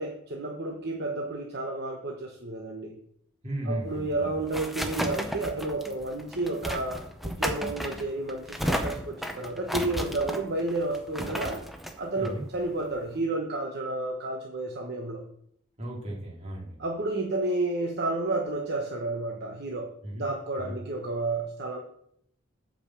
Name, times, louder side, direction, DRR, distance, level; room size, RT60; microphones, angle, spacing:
voice 1, 0.0-2.9 3.7-11.6 12.0-15.2 16.8-21.8, right 2 dB, 50° right, 1 dB, 1.1 m, -31 dB
voice 2, 3.4-4.4 12.2-12.4 15.8-16.8 20.0-20.3 20.6-20.8, right 1 dB, 30° right, -3 dB, 2.9 m, -35 dB
sound 1, 3.9-13.2, equal, ahead, 0.7 m, -34 dB
8.4 x 5.3 x 7.2 m, 0.69 s
head